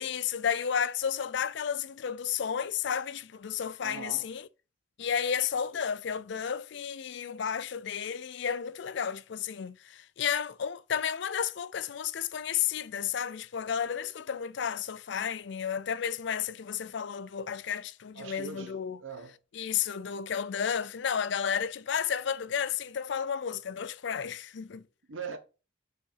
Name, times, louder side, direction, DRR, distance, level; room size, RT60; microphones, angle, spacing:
voice 1, 0.0-4.5 5.0-19.0 19.5-24.8, left 8 dB, 60° left, 0.4 m, -32 dB
voice 2, 3.8-4.3 18.1-19.3 25.1-25.4, right 5 dB, 70° right, 1.0 m, -41 dB
5.5 x 4.7 x 5.5 m
head